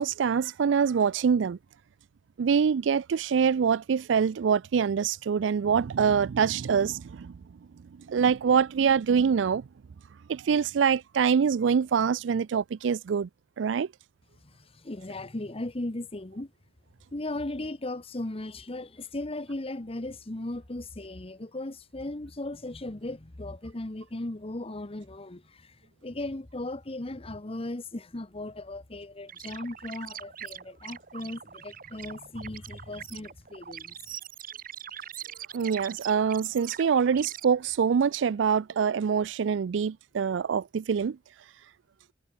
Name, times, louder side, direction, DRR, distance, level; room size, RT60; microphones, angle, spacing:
voice 1, 0.0-1.6 2.4-7.3 8.1-9.7 10.3-13.3 13.6-13.9 35.5-41.2, right 6 dB, 80° right, 0.4 m, -25 dB
voice 2, 14.4-16.5 17.1-25.7 26.0-33.9, left 2 dB, 30° left, 1.1 m, -37 dB
sound 1, 29.3-37.5, right 9 dB, 50° right, 2.1 m, -42 dB
head